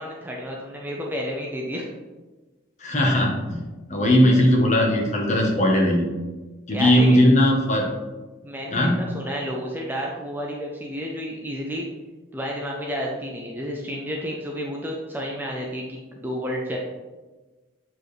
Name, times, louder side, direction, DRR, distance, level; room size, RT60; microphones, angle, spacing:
voice 1, 0.0-1.9 6.7-7.2 8.4-11.8 12.3-16.8, equal, 10° right, -1 dB, 0.6 m, -31 dB
voice 2, 2.8-3.6 3.9-6.1 6.7-7.8 8.7-9.0, left 1 dB, 35° left, -1 dB, 1.2 m, -18 dB
7.5 x 4.7 x 3.3 m, 1.2 s
head